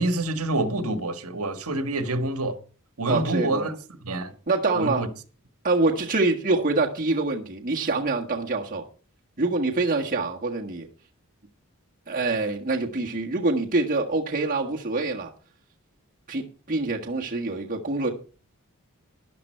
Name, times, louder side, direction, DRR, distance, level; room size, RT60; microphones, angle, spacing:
voice 1, 0.0-2.6 3.0-3.7 4.0-4.3 4.7-5.1, right 2 dB, 70° right, 1.7 m, -27 dB
voice 2, 3.1-3.7 4.5-5.1 5.6-8.9 9.4-10.9 12.1-15.3 16.3-18.1, right 3 dB, 40° right, 1.6 m, -25 dB
13.0 x 11.0 x 4.5 m
head